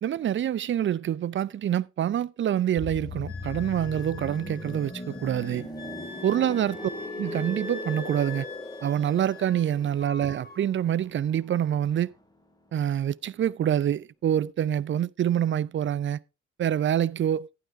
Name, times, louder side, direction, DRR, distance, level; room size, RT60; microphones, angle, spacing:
voice 1, 0.0-5.7 6.2-6.9 7.2-8.5 8.8-12.1 12.7-16.2 16.6-17.5, right 10 dB, 40° right, 0.4 m, -26 dB
sound 1, 2.8-12.4 12.7-12.9, left 2 dB, 15° left, 2.4 m, -39 dB
Wind instrument woodwind instrument, 3.3-9.7 10.0-10.6, left 4 dB, 30° left, 3.9 m, -44 dB
12.0 x 10.0 x 3.6 m
cardioid pair, 90°, 30 cm